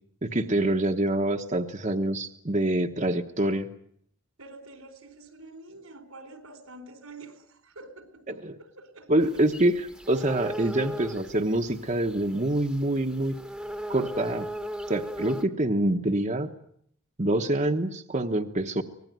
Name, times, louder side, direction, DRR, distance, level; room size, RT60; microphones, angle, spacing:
voice 1, 0.2-3.7 8.3-8.6 9.1-13.3 13.9-14.5 14.9-16.5 17.2-18.8, right 1 dB, 35° right, 5 dB, 1.1 m, -26 dB
voice 2, 4.4-9.4, right 2 dB, 90° right, 9 dB, 4.3 m, -47 dB
sound 1, 9.2-15.4, equal, 5° right, 1.2 m, -37 dB
25.0 x 19.5 x 9.4 m, 0.68 s
head